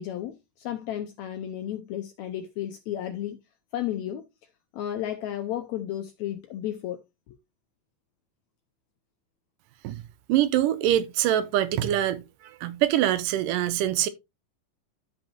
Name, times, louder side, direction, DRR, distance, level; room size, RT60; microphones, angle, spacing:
voice 1, 0.0-3.4 3.7-4.3 4.7-7.0 7.3-7.4, left 11 dB, 80° left, 1.6 m, -33 dB
voice 2, 10.3-14.1, right 12 dB, 80° right, 2.2 m, -24 dB
12.0 x 5.2 x 2.9 m
omnidirectional pair, 3.9 m